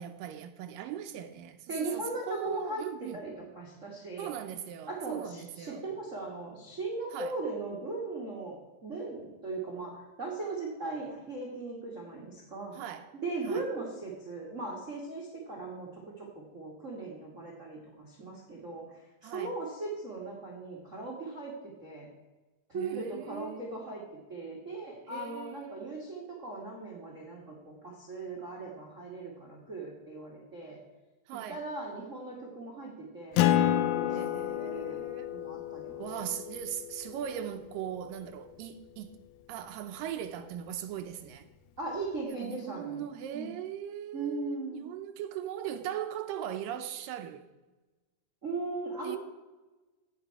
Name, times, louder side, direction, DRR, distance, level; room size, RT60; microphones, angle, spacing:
voice 1, 0.0-3.2 4.2-5.8 7.1-7.3 12.7-13.1 13.4-13.7 19.2-19.5 22.7-23.7 25.1-25.8 31.3-31.6 34.1-35.3 36.0-39.2 39.5-41.5 42.3-47.5 49.0-49.2, right 10 dB, 80° right, 2.2 m, -39 dB
voice 2, 1.7-2.8 3.1-4.3 4.9-12.7 13.2-16.3 16.5-22.1 22.7-24.0 24.3-30.8 31.5-33.4 33.6-36.0 41.8-43.0 43.3-43.5 44.1-44.8 48.4-49.2, right 3 dB, 50° right, 0.9 m, -38 dB
Acoustic guitar, 33.4-38.3, left 11 dB, 90° left, 1.6 m, -30 dB
16.0 x 5.3 x 4.6 m
omnidirectional pair, 4.1 m